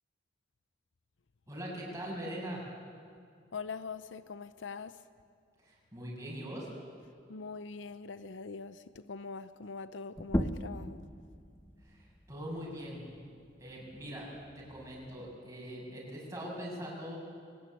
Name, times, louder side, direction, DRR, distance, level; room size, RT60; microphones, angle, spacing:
voice 1, 1.5-2.6 5.6-6.7 11.8-13.1 13.6-17.2, equal, 15° right, -4 dB, 7.1 m, -42 dB
voice 2, 3.5-5.0 7.3-11.0, left 4 dB, 85° left, 13 dB, 0.7 m, -43 dB
sound 1, 10.2-15.4, equal, 15° left, 0.9 m, -39 dB
22.5 x 19.0 x 9.9 m, 2.2 s
head